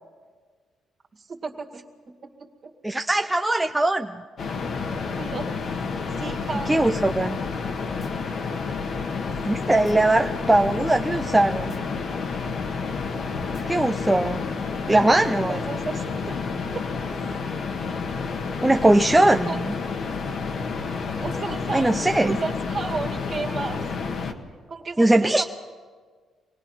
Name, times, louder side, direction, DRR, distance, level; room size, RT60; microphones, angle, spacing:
voice 1, 1.3-1.8 2.2-2.7 5.2-5.5 6.2-7.0 15.5-16.4 16.7-16.8 19.4-19.6 21.1-23.8 24.7-25.4, right 4 dB, 45° right, 1 dB, 2.2 m, -33 dB
voice 2, 2.8-4.2 6.7-7.4 9.5-11.8 13.7-14.5 14.9-15.6 18.6-19.7 21.7-22.4 25.0-25.4, right 2 dB, 10° right, 4 dB, 0.6 m, -20 dB
sound 1, 4.4-24.3, left 5 dB, 60° left, 1.5 m, -30 dB
sound 2, 7.1-7.6 7.9-8.1 8.7-9.4 9.7-9.9 10.5-11.3 11.6-11.8 12.4-13.1 13.4-13.6 14.2-14.4, left 5 dB, 30° left, 2.1 m, -42 dB
25.0 x 19.0 x 5.8 m, 1.5 s
cardioid pair, 90°, 0 cm